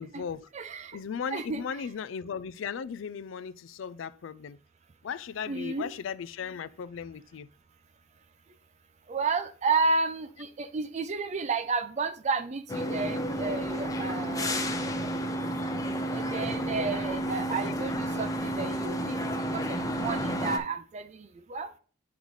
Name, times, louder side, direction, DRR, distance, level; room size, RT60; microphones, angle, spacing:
voice 1, 0.0-0.5 0.9-4.6 5.0-7.5, left 6 dB, 90° left, 0.4 m, -37 dB
voice 2, 0.5-1.0 1.3-1.6 5.5-5.9 9.1-14.6 16.1-19.2 19.5-21.1 21.5-21.7, right 4 dB, 35° right, 0.4 m, -31 dB
sound 1, 12.7-20.6, equal, 20° left, 0.7 m, -31 dB
9.6 x 4.0 x 3.1 m
head